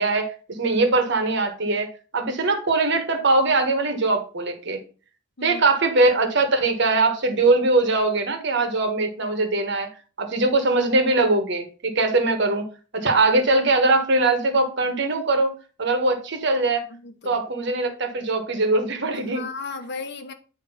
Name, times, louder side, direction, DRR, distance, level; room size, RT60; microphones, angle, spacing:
voice 1, 0.0-1.9 2.1-4.8 5.4-9.9 10.2-12.6 12.9-15.5 15.8-16.9 17.2-19.4, right 2 dB, 60° right, 1.4 m, -21 dB
voice 2, 16.9-17.4 19.1-20.3, left 4 dB, 60° left, 1.0 m, -35 dB
9.0 x 3.2 x 5.5 m
head